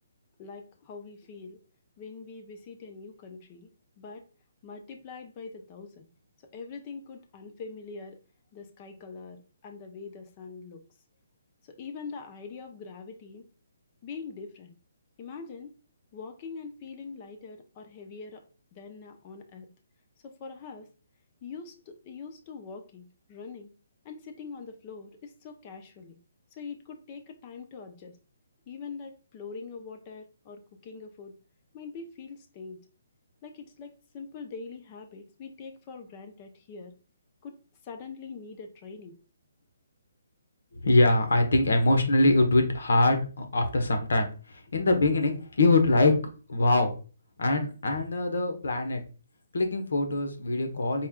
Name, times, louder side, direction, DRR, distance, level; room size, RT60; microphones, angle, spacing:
voice 1, 0.4-1.6 2.0-3.7 4.0-4.3 4.6-6.1 6.5-8.2 8.5-10.8 11.6-13.5 14.0-14.7 15.2-15.7 16.1-18.4 18.7-19.7 20.2-20.9 21.4-23.7 24.0-26.2 26.5-28.2 28.7-31.3 31.7-32.8 33.4-36.9 37.4-37.6 37.8-39.2, left 5 dB, 25° left, 5 dB, 0.4 m, -43 dB
voice 2, 40.7-46.1 46.5-46.9 47.4-49.0 49.5-51.1, left 2 dB, 75° left, 5 dB, 0.9 m, -23 dB
4.2 x 2.2 x 3.6 m, 0.36 s
hypercardioid pair, 170°, 0 cm